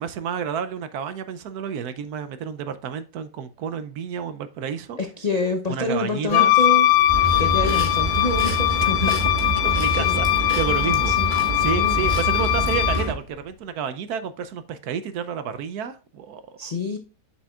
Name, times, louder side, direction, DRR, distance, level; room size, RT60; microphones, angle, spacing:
voice 1, 0.0-5.0 5.7-6.5 8.8-16.7, right 7 dB, 70° right, 12 dB, 1.0 m, -30 dB
voice 2, 5.0-6.9 7.4-9.2 10.0-10.2 11.0-12.1 16.6-17.0, left 3 dB, 65° left, 5 dB, 0.4 m, -27 dB
Wind instrument woodwind instrument, 6.3-13.1, left 15 dB, 80° left, 1.2 m, -21 dB
sound 1, 7.1-13.1, right 2 dB, 30° right, 1.9 m, -27 dB
7.2 x 7.0 x 2.4 m, 0.35 s
omnidirectional pair, 1.9 m